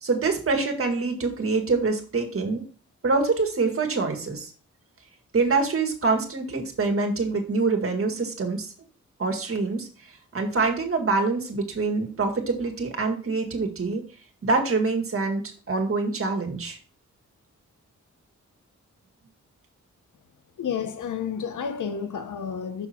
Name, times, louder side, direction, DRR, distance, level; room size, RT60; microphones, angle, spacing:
voice 1, 0.0-2.6 3.0-4.5 5.3-8.7 9.2-9.9 10.3-14.0 14.4-15.4 15.7-16.8, right 3 dB, 45° right, 1.9 m, -25 dB
voice 2, 20.6-22.9, left 7 dB, 85° left, 1.0 m, -30 dB
6.7 x 6.0 x 4.3 m
wide cardioid pair, 100°, 30 cm